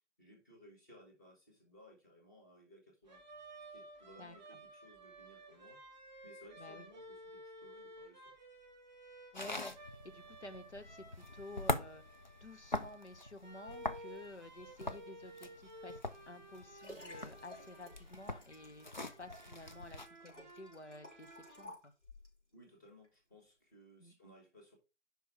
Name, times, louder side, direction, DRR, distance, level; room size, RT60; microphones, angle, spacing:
voice 1, 0.2-3.2 3.7-5.8 6.2-8.3 22.5-24.8, equal, 15° left, -1 dB, 1.4 m, -60 dB
sound 1, 3.1-21.6, right 1 dB, 5° right, 1.3 m, -55 dB
voice 2, 9.3-12.0 12.4-16.0 16.3-21.9 24.0-24.1, left 2 dB, 70° left, 8 dB, 1.1 m, -52 dB
sound 2, 9.3-20.1, left 2 dB, 40° left, 0.5 m, -43 dB
Liquid, 16.1-22.4 23.0-23.1, left 1 dB, 90° left, 4.1 m, -56 dB
5.5 x 4.6 x 6.0 m, 0.30 s
figure-of-eight pair, 155°, 35 cm